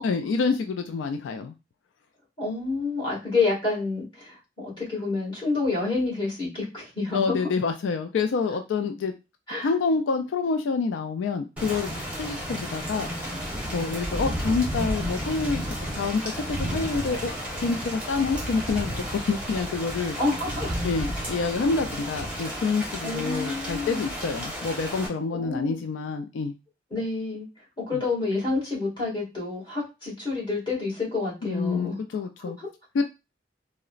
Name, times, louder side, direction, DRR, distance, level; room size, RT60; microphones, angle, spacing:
voice 1, 0.0-1.5 7.1-9.1 9.6-13.1 13.7-15.6 15.9-17.3 17.6-20.2 20.8-26.5 27.9-28.0 31.4-32.6 32.9-33.0, left 4 dB, 85° left, 7 dB, 0.3 m, -27 dB
voice 2, 2.4-7.4 9.5-9.7 20.2-20.7 23.0-24.0 25.3-25.8 26.9-27.4 27.8-32.0 32.6-32.7, left 3 dB, 25° left, -6 dB, 1.8 m, -28 dB
Thunder / Rain, 11.6-25.1, equal, 5° right, 0.9 m, -32 dB
3.8 x 2.1 x 2.4 m, 0.27 s
head